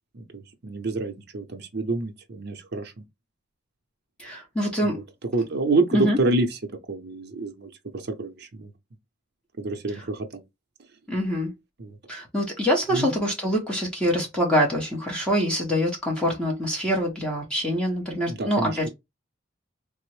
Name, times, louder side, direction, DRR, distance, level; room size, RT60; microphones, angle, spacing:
voice 1, 0.1-3.0 4.8-6.6 6.9-8.7 9.6-10.4 11.8-12.0 12.9-13.1 18.3-18.9, right 2 dB, 55° right, 0.6 m, -28 dB
voice 2, 4.2-5.0 5.9-6.2 11.1-11.5 12.1-18.9, equal, 5° left, 0.8 m, -25 dB
3.3 x 2.0 x 3.1 m
head